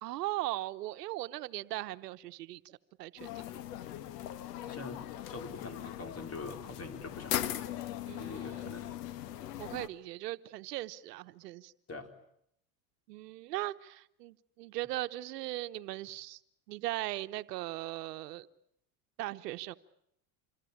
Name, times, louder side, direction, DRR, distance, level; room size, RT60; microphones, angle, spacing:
voice 1, 0.0-3.3 8.1-8.6 9.6-11.7 13.1-16.4 16.7-18.5 19.2-19.8, right 16 dB, 90° right, 11 dB, 1.0 m, -39 dB
sound 1, 3.2-9.9, left 12 dB, 85° left, 1.7 m, -39 dB
voice 2, 4.6-5.0 5.3-7.5 8.2-9.0 11.9-12.1, left 3 dB, 30° left, 6 dB, 4.3 m, -44 dB
27.0 x 22.0 x 8.7 m, 0.74 s
supercardioid pair, 105°, 47 cm